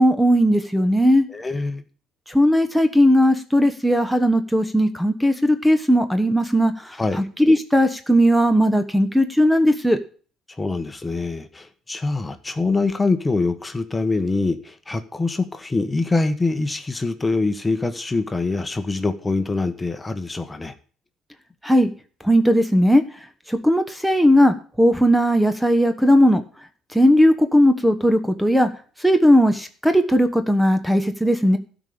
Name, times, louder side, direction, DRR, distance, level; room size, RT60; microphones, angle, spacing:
voice 1, 0.0-1.3 2.3-6.7 7.4-10.0 21.6-21.9 22.2-23.0 23.5-26.4 26.9-28.7 29.0-31.6, equal, ahead, 9 dB, 1.3 m, -17 dB
voice 2, 1.3-1.8 7.0-7.3 10.5-20.7, left 3 dB, 20° left, 9 dB, 1.3 m, -24 dB
12.5 x 5.2 x 8.6 m, 0.40 s
hypercardioid pair, 60°, 0 cm